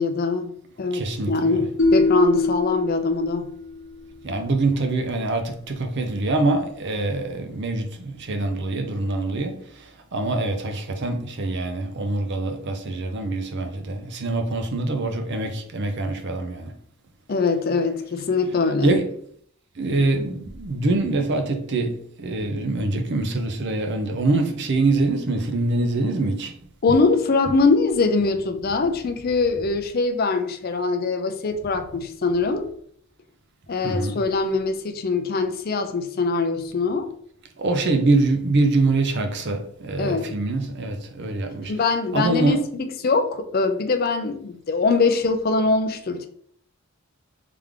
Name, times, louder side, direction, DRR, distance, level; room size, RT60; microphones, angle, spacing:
voice 1, 0.0-3.5 17.3-19.0 26.8-32.7 33.7-37.1 40.0-40.3 41.7-46.3, left 3 dB, 40° left, 0.4 m, -22 dB
voice 2, 0.9-1.6 4.2-7.9 8.3-9.5 10.1-16.7 18.8-19.1 19.8-26.5 33.8-34.1 37.6-41.7 42.1-42.6, right 2 dB, 50° right, 0.6 m, -24 dB
sound 1, 1.8-3.9, left 2 dB, 60° left, 0.9 m, -23 dB
3.5 x 3.4 x 3.5 m
head